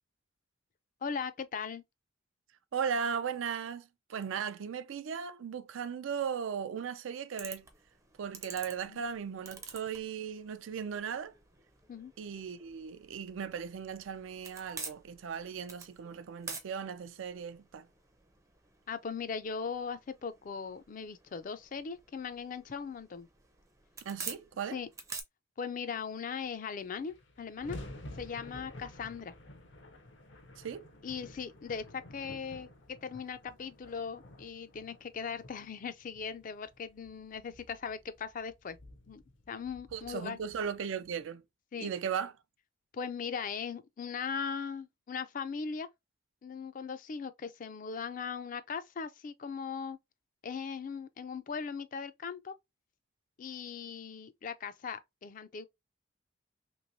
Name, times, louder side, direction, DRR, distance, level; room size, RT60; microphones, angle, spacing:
voice 1, 1.0-1.8 8.9-9.0 11.9-12.1 18.9-23.3 24.7-24.9 25.6-27.8 28.2-29.3 31.0-38.8 39.1-39.2 39.5-40.4 41.7-41.9 42.9-45.9 46.4-50.0 50.4-52.5 53.4-55.7, left 6 dB, 45° left, 0.4 m, -39 dB
voice 2, 2.7-7.7 8.2-11.3 12.2-17.9 24.1-24.8 30.6-30.9 39.9-41.4 41.8-42.3, right 7 dB, 90° right, 0.4 m, -37 dB
sound 1, 7.4-25.2, right 4 dB, 15° right, 0.5 m, -49 dB
sound 2, 26.5-26.6 26.7-41.1, left 1 dB, 75° left, 0.7 m, -51 dB
3.1 x 3.0 x 2.5 m
head